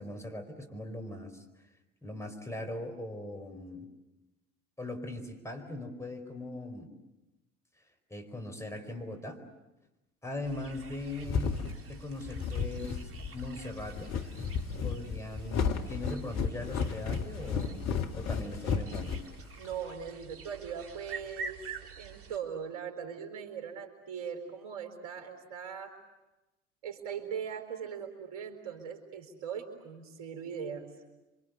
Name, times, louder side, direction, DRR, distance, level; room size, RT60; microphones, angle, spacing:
voice 1, 0.0-1.4 2.0-3.9 4.8-6.9 8.1-9.4 10.2-11.5 11.8-13.0 13.3-14.2 14.8-19.2, left 1 dB, 10° left, 4 dB, 4.8 m, -40 dB
sound 1, 10.4-22.4, right 5 dB, 35° right, 3.3 m, -47 dB
sound 2, 10.8-19.8, left 6 dB, 45° left, 2.1 m, -33 dB
voice 2, 19.6-21.6 22.0-25.9 26.8-30.9, right 7 dB, 60° right, 6 dB, 4.4 m, -40 dB
27.0 x 25.5 x 8.2 m, 1.0 s
figure-of-eight pair, 65°, 37 cm